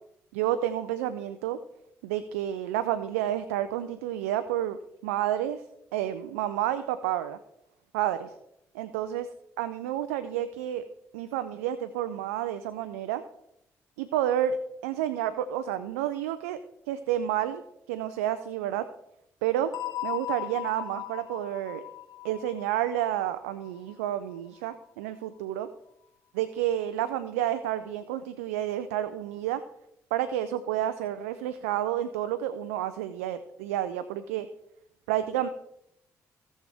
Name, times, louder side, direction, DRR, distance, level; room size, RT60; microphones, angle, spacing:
voice 1, 0.3-1.6 2.0-4.8 5.0-5.6 5.9-7.4 7.9-8.3 8.7-9.3 9.6-10.8 11.1-13.2 14.0-14.6 14.8-16.6 16.9-17.6 17.9-18.9 19.4-19.7 20.0-21.8 22.2-25.7 26.3-29.6 30.1-34.5 35.1-35.5, right 11 dB, 90° right, 12 dB, 0.4 m, -30 dB
sound 1, 19.7-24.4, left 15 dB, 60° left, 1.0 m, -38 dB
17.0 x 6.5 x 3.4 m, 0.80 s
hypercardioid pair, 50°, 8 cm